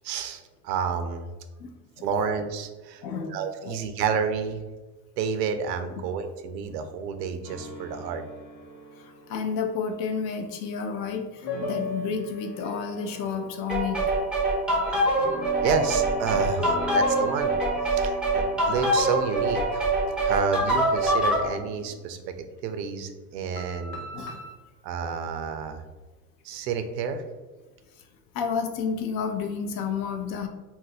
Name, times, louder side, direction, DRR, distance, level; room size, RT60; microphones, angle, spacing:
voice 1, 0.0-1.3 2.0-3.0 3.3-4.6 5.2-8.2 15.6-17.5 17.9-19.9 20.2-22.4 22.6-24.1 24.8-25.8 26.4-27.2, right 6 dB, 85° right, 8 dB, 0.6 m, -29 dB
voice 2, 1.6-2.1 3.0-3.4 3.6-3.8 5.9-6.0 9.0-14.0 16.3-16.5 24.1-24.4 28.3-30.5, left 6 dB, 50° left, 4 dB, 0.6 m, -31 dB
sound 1, 7.4-10.9 11.4-22.1 23.6-24.5, left 2 dB, 80° left, 0.9 m, -39 dB
sound 2, 13.7-21.5, right 1 dB, ahead, 0.5 m, -24 dB
2.6 x 2.0 x 3.9 m, 1.2 s
supercardioid pair, 100°, 49 cm